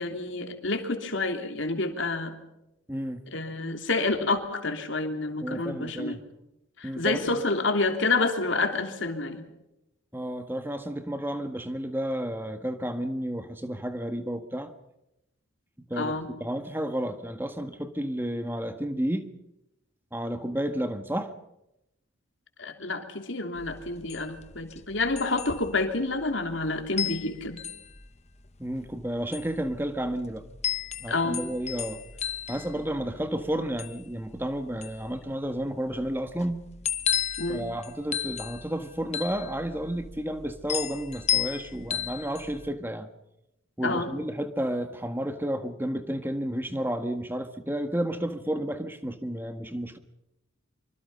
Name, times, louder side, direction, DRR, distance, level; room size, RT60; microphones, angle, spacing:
voice 1, 0.0-2.3 3.3-6.2 6.8-9.5 16.0-16.3 22.6-27.6 31.1-31.4 37.4-37.7 43.8-44.2, left 3 dB, 65° left, 5 dB, 3.1 m, -28 dB
voice 2, 2.9-3.2 5.4-6.2 6.8-7.4 10.1-14.7 15.9-19.3 20.1-21.3 28.6-30.4 31.0-32.0 32.5-36.6 37.5-43.1 43.8-50.0, right 1 dB, 10° right, 8 dB, 1.5 m, -31 dB
sound 1, 23.5-42.7, left 9 dB, 35° left, 1.0 m, -34 dB
25.5 x 25.5 x 5.6 m, 0.88 s
head